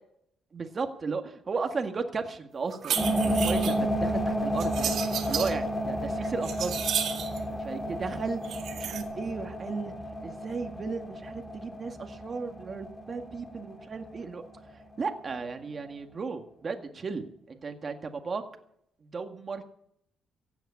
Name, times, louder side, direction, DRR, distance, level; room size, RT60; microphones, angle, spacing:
voice 1, 0.5-4.9 5.3-6.8 7.6-9.9 10.2-14.4 14.7-18.4 19.0-19.6, right 4 dB, 35° right, 5 dB, 1.9 m, -35 dB
sound 1, 2.7-3.8 4.6-5.5 6.0-7.4 8.4-9.0, right 8 dB, 65° right, 2.2 m, -32 dB
sound 2, 2.9-14.7, equal, 10° left, 2.1 m, -32 dB
16.0 x 9.1 x 8.4 m, 0.70 s
cardioid pair, 115°, 0 cm